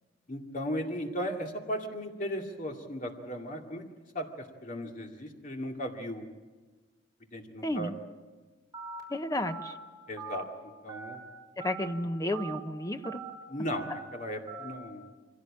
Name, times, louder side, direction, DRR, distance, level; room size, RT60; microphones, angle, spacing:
voice 1, 0.3-3.8 4.1-6.3 7.3-7.9 10.1-11.2 13.5-15.1, equal, 45° left, 2 dB, 2.4 m, -36 dB
voice 2, 7.6-8.0 9.1-9.8 11.6-13.2, left 1 dB, 15° left, 8 dB, 0.9 m, -32 dB
Telephone, 8.7-9.0 9.4-9.7 10.2-10.4 10.9-11.2 11.6-11.9 12.3-12.6 13.0-13.3 13.8-14.0 14.5-14.7, right 6 dB, 20° right, 5.6 m, -41 dB
24.5 x 17.0 x 8.7 m, 1.3 s
head